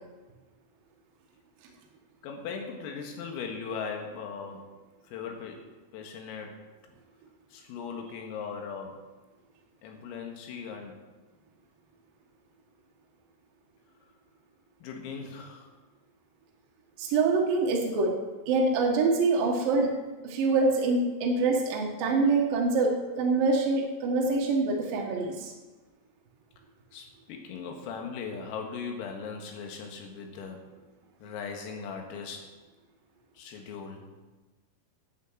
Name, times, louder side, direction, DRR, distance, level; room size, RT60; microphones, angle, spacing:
voice 1, 2.2-4.7 5.1-5.6 5.9-6.6 7.5-9.0 9.8-11.0 14.8-15.7 26.9-30.7 31.2-32.5 33.4-34.1, left 5 dB, 85° left, 2 dB, 4.4 m, -39 dB
voice 2, 17.0-18.1 18.5-19.9 20.2-25.5, right 3 dB, 65° right, -1 dB, 2.4 m, -25 dB
12.0 x 7.6 x 7.9 m, 1.2 s
omnidirectional pair, 5.9 m